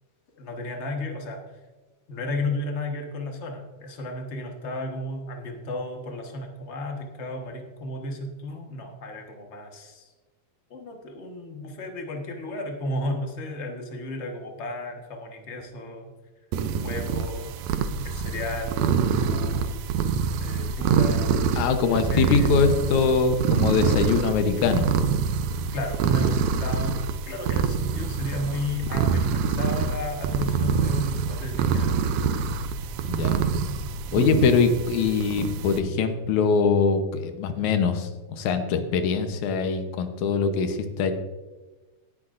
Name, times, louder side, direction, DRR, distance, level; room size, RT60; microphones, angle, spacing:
voice 1, 0.4-1.4 2.1-10.1 10.7-16.1 16.8-17.5 18.0-19.7 20.4-21.3 22.1-22.6 25.7-32.0, left 2 dB, 55° left, 3 dB, 0.7 m, -33 dB
sound 1, 16.5-35.8, right 6 dB, 75° right, 1.9 m, -26 dB
voice 2, 21.5-24.9 33.1-33.4 34.1-41.1, left 5 dB, 75° left, 7 dB, 2.3 m, -23 dB
17.0 x 10.0 x 2.6 m, 1.2 s
omnidirectional pair, 3.5 m